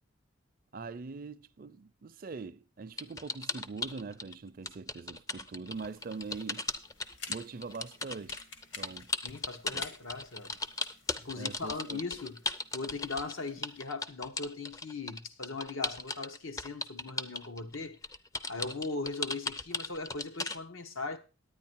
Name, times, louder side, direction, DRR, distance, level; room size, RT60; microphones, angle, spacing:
voice 1, 0.7-6.7 7.3-8.5 8.8-9.1 9.7-9.8 11.3-12.0, right 4 dB, 45° right, 0.4 m, -42 dB
sound 1, 3.0-4.3 4.7-20.6, left 3 dB, 15° left, 0.4 m, -36 dB
sound 2, 5.7-13.8, left 4 dB, 65° left, 1.6 m, -53 dB
voice 2, 9.2-10.6 11.2-12.4 12.7-18.0 18.5-21.2, left 3 dB, 85° left, 1.2 m, -39 dB
9.6 x 9.5 x 4.5 m
head